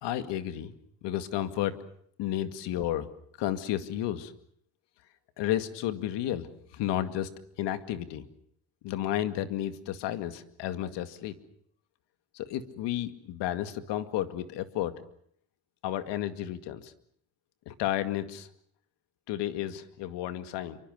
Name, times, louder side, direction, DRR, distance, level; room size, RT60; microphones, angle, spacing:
voice 1, 0.0-0.7 1.0-1.8 2.2-3.1 3.4-4.3 5.4-6.5 6.7-7.3 7.6-8.3 8.8-11.3 12.3-15.0 15.8-16.9 17.7-18.5 19.3-20.8, left 12 dB, 80° left, 10 dB, 2.3 m, -32 dB
27.5 x 24.5 x 6.7 m, 0.64 s
cardioid pair, 100°, 42 cm